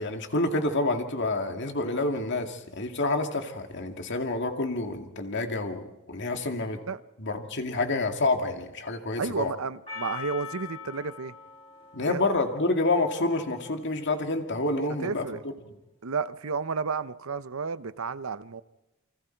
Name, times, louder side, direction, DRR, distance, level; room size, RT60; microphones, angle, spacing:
voice 1, 0.0-6.8 7.2-9.5 11.9-15.2, left 2 dB, 55° left, 2.2 m, -28 dB
voice 2, 9.2-11.3 12.0-12.2 14.7-15.4 16.0-18.6, right 5 dB, 70° right, 0.7 m, -32 dB
Percussion, 9.9-14.2, left 7 dB, 25° left, 6.5 m, -43 dB
28.5 x 25.0 x 4.6 m
head